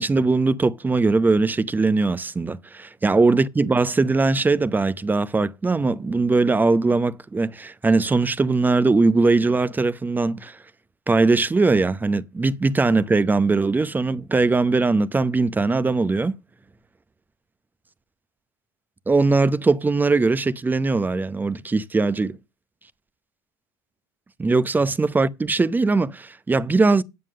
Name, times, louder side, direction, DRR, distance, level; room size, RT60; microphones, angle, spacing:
voice 1, 0.0-10.6 11.1-16.4 19.1-22.4 24.4-27.0, right 3 dB, 15° right, 0.8 m, -20 dB
9.5 x 7.4 x 6.4 m
supercardioid pair, 90°, 11 cm